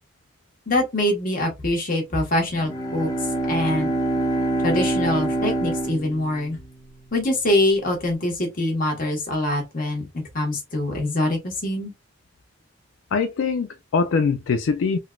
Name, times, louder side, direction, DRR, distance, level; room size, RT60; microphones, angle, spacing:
voice 1, 0.7-3.1 3.5-3.9 4.6-6.6 7.1-10.1 10.3-11.9, left 1 dB, 45° left, 1.3 m, -24 dB
Bowed string instrument, 2.5-6.9, right 2 dB, 20° left, 0.7 m, -25 dB
voice 2, 13.1-15.0, left 5 dB, 85° left, 0.4 m, -22 dB
3.8 x 2.4 x 2.3 m
head